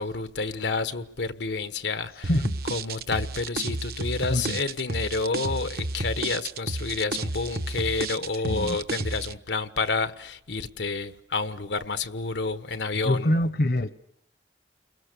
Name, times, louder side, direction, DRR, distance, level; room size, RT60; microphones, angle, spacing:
voice 1, 0.0-13.4, left 4 dB, 90° left, 1.3 m, -29 dB
sound 1, 2.2-9.3, right 3 dB, 60° right, 1.0 m, -32 dB
voice 2, 2.3-2.6 4.3-4.6 8.3-8.8 13.0-13.9, left 1 dB, 55° left, 0.9 m, -25 dB
30.0 x 22.5 x 6.8 m
head